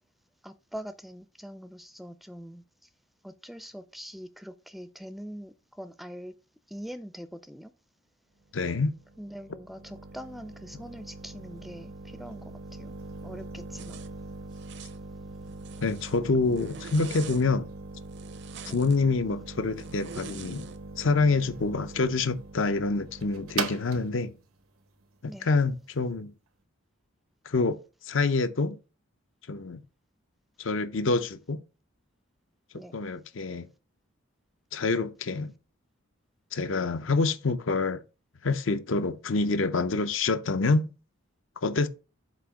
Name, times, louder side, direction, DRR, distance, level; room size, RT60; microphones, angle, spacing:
voice 1, 0.4-2.9 3.2-6.3 6.7-7.7 9.2-12.9 13.2-14.0 16.5-16.6 18.7-18.9 25.3-25.5 32.7-33.0, equal, ahead, 0.4 m, -43 dB
voice 2, 8.5-9.0 15.8-17.7 18.7-20.6 21.0-24.3 25.2-26.3 27.5-28.8 29.5-29.8 30.6-31.6 32.9-33.7 34.7-35.5 36.5-38.0 38.4-40.9 41.6-41.9, left 3 dB, 65° left, 0.6 m, -27 dB
sound 1, 8.5-26.1, right 4 dB, 90° right, 1.0 m, -42 dB
Zipper (clothing), 13.7-14.1 14.5-15.0 15.5-16.2 16.5-17.4 18.1-19.0 19.8-20.8, right 6 dB, 55° right, 0.6 m, -45 dB
7.7 x 2.9 x 5.9 m
head